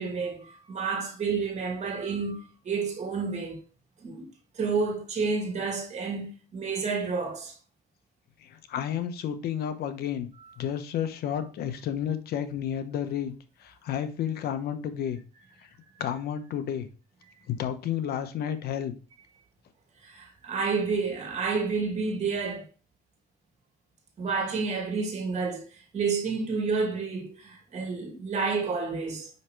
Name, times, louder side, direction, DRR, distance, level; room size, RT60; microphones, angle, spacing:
voice 1, 0.0-3.6 4.0-4.3 4.5-7.6 11.3-11.4 17.3-17.4 20.0-22.7 24.2-29.3, right 4 dB, 40° right, 2.4 m, -30 dB
voice 2, 8.4-10.3 10.6-13.3 13.6-15.2 15.6-15.7 16.0-16.9 17.5-18.9, left 9 dB, 70° left, 0.9 m, -31 dB
5.7 x 5.6 x 3.1 m
cardioid pair, 110°, 17 cm